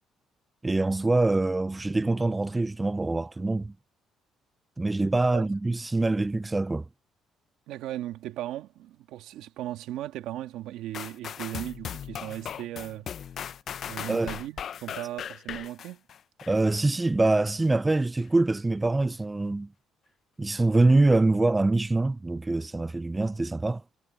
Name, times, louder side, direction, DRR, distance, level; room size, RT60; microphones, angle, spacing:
voice 1, 0.6-3.7 4.8-6.8 14.1-14.3 16.5-19.7 20.4-23.8, right 2 dB, 15° right, 0.3 m, -24 dB
voice 2, 7.7-13.1 13.9-16.0, right 13 dB, 85° right, 2.1 m, -37 dB
sound 1, 10.9-16.8 17.3-17.4, left 9 dB, 50° left, 0.5 m, -38 dB
cardioid pair, 140°, 0 cm